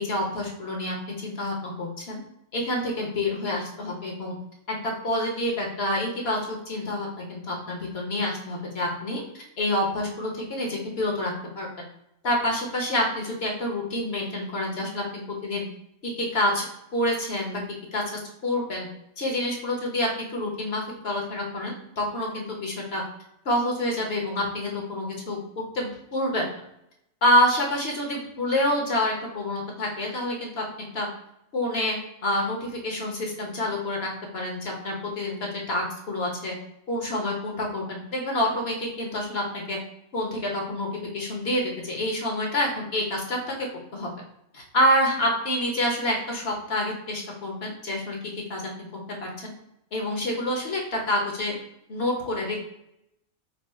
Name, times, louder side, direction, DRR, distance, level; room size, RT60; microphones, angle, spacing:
voice 1, 0.0-2.2 2.5-4.3 4.7-11.7 12.2-15.6 16.0-16.6 16.9-17.6 17.9-18.9 19.2-23.0 23.4-25.4 25.7-26.4 27.2-30.6 30.9-31.1 31.5-32.0 32.2-36.5 36.9-39.8 40.1-43.5 43.9-44.1 44.5-48.2 48.5-49.3 49.9-51.5 51.9-52.6, left 1 dB, 50° left, 0 dB, 1.1 m, -27 dB
4.5 x 2.1 x 4.2 m, 0.80 s
omnidirectional pair, 1.4 m